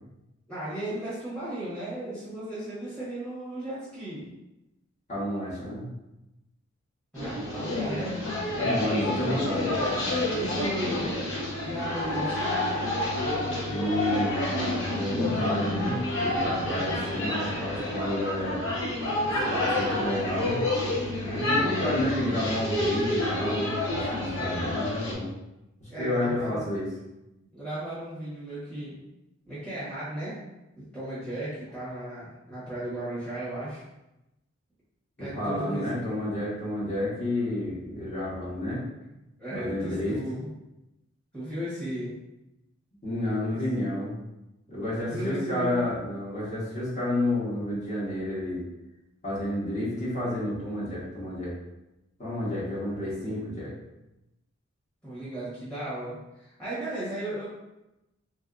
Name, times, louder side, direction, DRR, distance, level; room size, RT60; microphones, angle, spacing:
voice 1, 0.5-4.3 7.1-8.2 8.9-9.4 10.4-12.7 25.9-26.7 27.5-29.0 29.5-30.4 30.8-33.8 35.2-36.0 39.4-40.5 41.3-42.2 43.5-43.6 45.1-45.8 55.0-57.5, right 1 dB, 5° left, -11 dB, 0.9 m, -35 dB
voice 2, 5.1-5.9 8.5-9.7 13.7-18.6 19.5-20.6 21.2-25.3 25.8-26.9 35.2-38.8 39.5-40.2 43.0-44.1 44.7-48.6 49.2-51.5 52.2-53.7, left 1 dB, 35° left, -9 dB, 1.1 m, -30 dB
sound 1, 7.1-25.1, left 1 dB, 70° left, 0.8 m, -29 dB
3.2 x 2.6 x 2.4 m, 0.94 s
head